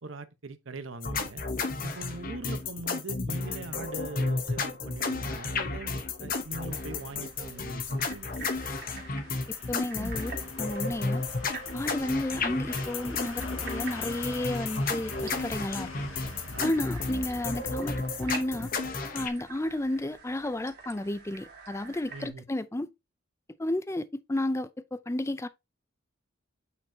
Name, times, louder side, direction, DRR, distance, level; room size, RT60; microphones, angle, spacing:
voice 1, 0.0-1.4 1.8-8.5 16.5-16.8 22.1-22.4, right 3 dB, 70° right, 0.9 m, -42 dB
sound 1, 1.0-19.3, left 3 dB, 45° left, 0.9 m, -33 dB
sound 2, 5.7-20.2 20.5-20.6, left 2 dB, 85° left, 1.9 m, -46 dB
sound 3, 6.6-22.3, right 5 dB, 50° right, 2.1 m, -48 dB
voice 2, 9.5-11.2 11.7-15.9 16.6-18.7 19.1-22.9 23.6-25.5, left 1 dB, 15° left, 0.4 m, -32 dB
8.5 x 4.6 x 2.8 m
head